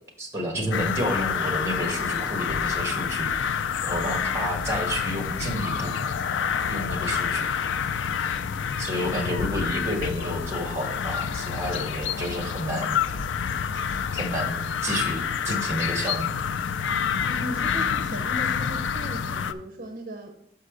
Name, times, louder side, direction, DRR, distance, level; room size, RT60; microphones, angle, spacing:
voice 1, 0.2-3.3 3.8-5.9 6.7-7.5 8.8-13.0 14.1-16.4, equal, 15° right, 2 dB, 1.4 m, -30 dB
sound 1, 0.7-19.5, left 7 dB, 85° left, 0.4 m, -28 dB
voice 2, 17.2-20.3, equal, 45° right, 4 dB, 0.6 m, -37 dB
5.7 x 5.6 x 4.9 m, 0.72 s
head